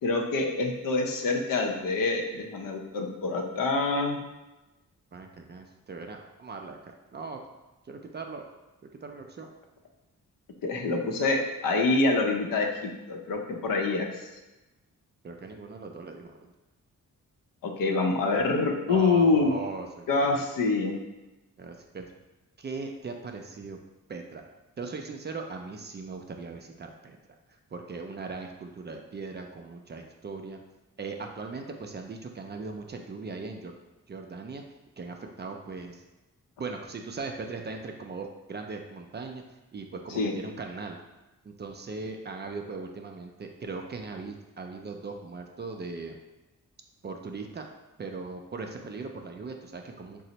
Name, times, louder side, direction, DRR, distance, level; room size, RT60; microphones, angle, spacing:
voice 1, 0.0-4.2 10.6-14.3 17.6-19.5 20.1-21.0 40.1-40.3, left 3 dB, 75° left, 2 dB, 0.6 m, -26 dB
voice 2, 5.1-6.8 7.1-7.4 7.9-8.4 9.0-9.5 15.2-16.3 18.9-20.4 21.6-22.0 22.6-23.8 24.1-24.4 24.8-27.2 27.7-30.6 31.0-33.8 34.1-34.6 35.0-36.0 36.6-41.0 41.4-46.2 47.0-47.7 48.0-50.2, right 4 dB, 30° right, 3 dB, 0.4 m, -39 dB
4.0 x 2.0 x 2.8 m, 1.1 s
cardioid pair, 60°, 34 cm